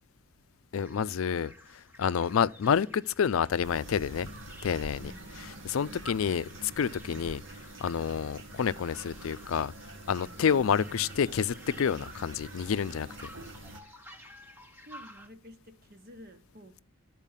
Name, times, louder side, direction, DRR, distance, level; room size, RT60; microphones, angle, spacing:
voice 1, 0.7-4.3 4.6-7.4 7.8-9.7 10.1-13.1, left 7 dB, 80° left, 0.4 m, -29 dB
sound 1, 0.7-15.3, equal, 10° right, 0.9 m, -53 dB
sound 2, 3.6-13.8, right 1 dB, 65° right, 1.5 m, -46 dB
voice 2, 5.0-6.4 10.5-10.7 14.8-16.8, equal, 45° right, 1.2 m, -52 dB
12.0 x 4.6 x 7.3 m
head